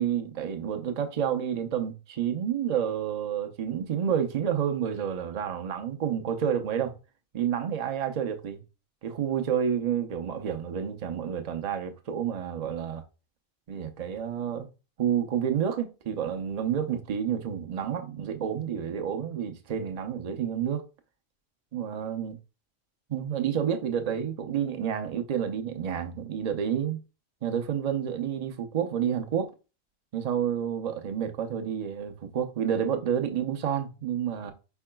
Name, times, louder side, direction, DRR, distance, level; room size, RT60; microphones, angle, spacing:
voice 1, 0.0-6.9 7.3-8.6 9.0-13.0 13.7-14.7 15.0-20.8 21.7-22.4 23.1-27.0 27.4-29.5 30.1-34.5, right 8 dB, 45° right, 0.5 m, -29 dB
4.7 x 4.5 x 2.2 m
omnidirectional pair, 1.4 m